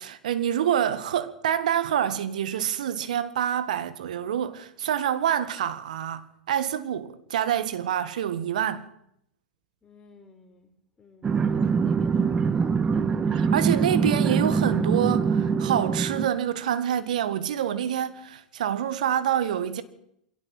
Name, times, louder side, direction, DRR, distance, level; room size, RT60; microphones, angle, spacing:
voice 1, 0.0-8.9 13.3-19.8, right 10 dB, 65° right, 1.7 m, -27 dB
voice 2, 9.8-13.1, left 4 dB, 15° left, 4.0 m, -53 dB
sound 1, 11.2-16.3, right 5 dB, 20° right, 1.2 m, -24 dB
23.5 x 17.5 x 7.8 m
figure-of-eight pair, 95°, 4 cm